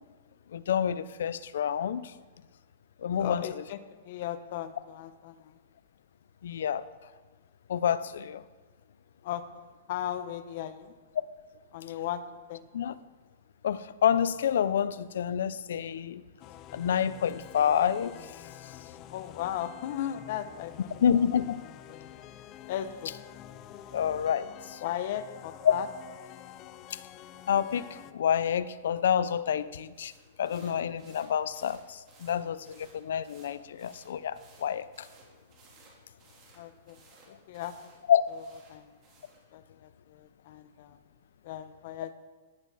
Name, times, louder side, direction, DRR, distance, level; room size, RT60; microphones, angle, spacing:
voice 1, 0.5-2.1 3.0-3.4 6.4-6.9 7.7-8.4 12.7-13.0 13.6-16.2 16.7-18.3 21.0-21.7 23.9-24.8 25.6-25.7 26.9-27.0 27.5-30.1 30.4-35.1 38.1-38.2, left 8 dB, 75° left, 16 dB, 0.6 m, -28 dB
voice 2, 3.2-3.8 4.0-5.5 9.2-10.9 11.7-12.2 12.5-12.7 19.1-21.0 21.9-22.1 22.7-23.1 24.8-25.9 36.5-37.0 37.3-37.9 38.7-39.0 39.5-41.0 41.4-42.1, left 11 dB, 50° left, 11 dB, 0.9 m, -37 dB
choir and organ, 16.4-28.1, left 12 dB, 30° left, 0.4 m, -48 dB
sound 1, 29.9-39.4, right 3 dB, 30° right, 3.5 m, -59 dB
17.5 x 9.4 x 4.2 m, 1.4 s
hypercardioid pair, 160°, 0 cm